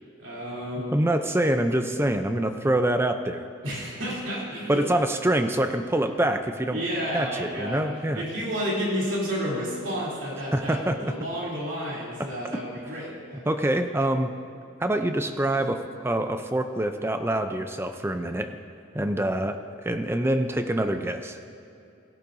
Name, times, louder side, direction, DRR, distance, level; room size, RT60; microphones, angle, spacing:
voice 1, 0.2-1.0 3.6-4.9 6.7-10.8 11.0-13.4, equal, 65° right, -6 dB, 3.2 m, -31 dB
voice 2, 0.9-3.5 4.7-6.8 7.1-8.2 10.5-11.1 12.2-12.3 13.5-14.3 14.8-18.6 18.9-21.4, right 1 dB, 10° right, 7 dB, 0.5 m, -25 dB
17.0 x 11.5 x 2.7 m, 2.6 s
head